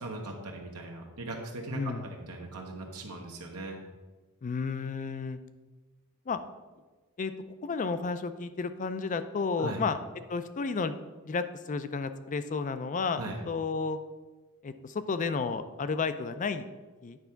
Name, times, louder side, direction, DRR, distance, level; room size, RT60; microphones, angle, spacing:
voice 1, 0.0-3.8 9.6-9.8 13.2-13.4, right 2 dB, 80° right, 1 dB, 1.0 m, -39 dB
voice 2, 1.7-2.1 4.4-5.4 6.3-6.4 7.2-7.3 7.6-10.0 10.3-11.0 11.2-14.0 14.6-16.6 17.0-17.2, left 4 dB, 35° left, 11 dB, 0.4 m, -32 dB
9.1 x 3.5 x 5.7 m, 1.3 s
head